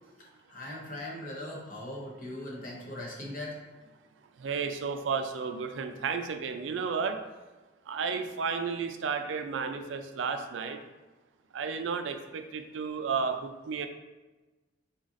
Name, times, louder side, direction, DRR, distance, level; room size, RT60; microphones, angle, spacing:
voice 1, 0.5-3.6, left 1 dB, 45° left, -2 dB, 0.8 m, -39 dB
voice 2, 4.4-7.2 7.9-10.8 11.5-13.9, right 5 dB, 85° right, 7 dB, 0.4 m, -32 dB
4.0 x 3.8 x 2.5 m, 1.2 s
head